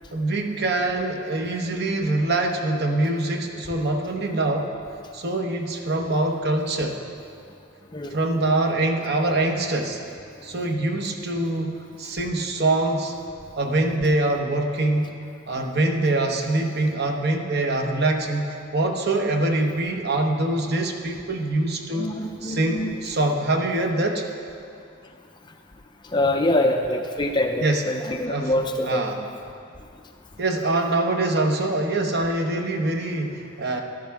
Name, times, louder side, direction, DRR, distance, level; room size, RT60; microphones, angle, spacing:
voice 1, 0.1-4.7 5.1-7.0 8.1-10.0 10.4-13.1 13.6-15.1 15.5-22.1 22.4-24.2 27.6-27.8 28.2-29.3 30.4-33.8, right 2 dB, 45° right, 3 dB, 1.0 m, -24 dB
voice 2, 21.9-22.9 26.1-29.1, left 1 dB, 20° left, 4 dB, 0.5 m, -24 dB
14.0 x 12.5 x 3.5 m, 2.4 s
head